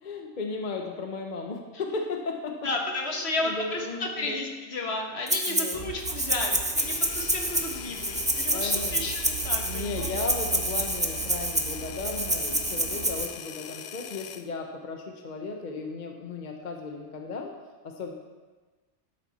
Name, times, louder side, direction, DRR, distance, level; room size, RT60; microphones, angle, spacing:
voice 1, 0.0-2.6 3.2-4.4 5.5-5.9 7.9-8.0 8.5-9.0 9.6-17.5 17.8-18.1, left 4 dB, 45° left, 3 dB, 0.9 m, -35 dB
voice 2, 2.6-10.2, left 2 dB, 60° left, 1 dB, 1.6 m, -33 dB
Rattle (instrument), 5.3-5.8 6.0-13.3, right 1 dB, 10° right, 0.4 m, -28 dB
sound 1, 5.7-13.3, right 9 dB, 60° right, 0.9 m, -41 dB
sound 2, 6.8-14.5, left 8 dB, 80° left, 0.9 m, -40 dB
11.5 x 7.3 x 4.1 m, 1.3 s
omnidirectional pair, 1.2 m